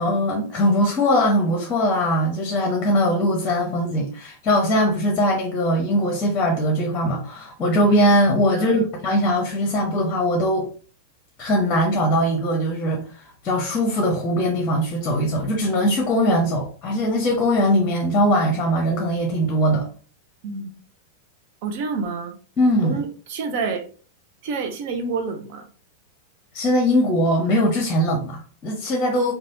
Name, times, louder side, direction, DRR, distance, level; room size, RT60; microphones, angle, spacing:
voice 1, 0.0-10.7 11.4-13.0 13.4-19.9 22.6-23.0 26.5-29.3, equal, 30° left, 1 dB, 0.8 m, -21 dB
voice 2, 8.5-8.9 20.4-20.8 21.6-22.4 22.8-23.8 24.4-25.7, right 4 dB, 55° right, 5 dB, 0.6 m, -28 dB
3.3 x 2.3 x 2.5 m, 0.40 s
figure-of-eight pair, 95°, 0 cm